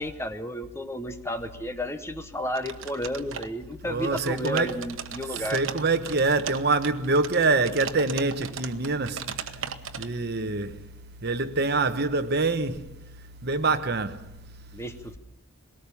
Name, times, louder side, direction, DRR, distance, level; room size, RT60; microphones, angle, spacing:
voice 1, 0.0-5.6 14.7-15.2, left 1 dB, 15° left, 1.0 m, -32 dB
sound 1, 2.5-3.7 4.0-10.1, right 7 dB, 70° right, 1.2 m, -37 dB
voice 2, 3.8-4.8 5.3-9.2 10.0-10.7 11.2-12.8 13.4-14.2, right 3 dB, 50° right, 1.1 m, -25 dB
21.5 x 18.0 x 7.1 m
head